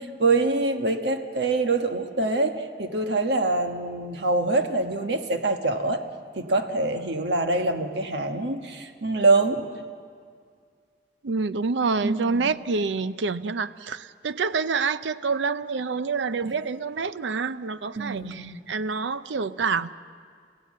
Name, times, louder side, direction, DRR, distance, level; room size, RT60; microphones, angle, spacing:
voice 1, 0.0-6.0 6.3-9.7 12.0-12.5 16.4-16.5 18.0-18.6, right 2 dB, 65° right, 6 dB, 1.3 m, -25 dB
voice 2, 11.2-19.9, right 4 dB, 80° right, 14 dB, 0.6 m, -27 dB
28.5 x 15.5 x 7.5 m, 2.1 s
head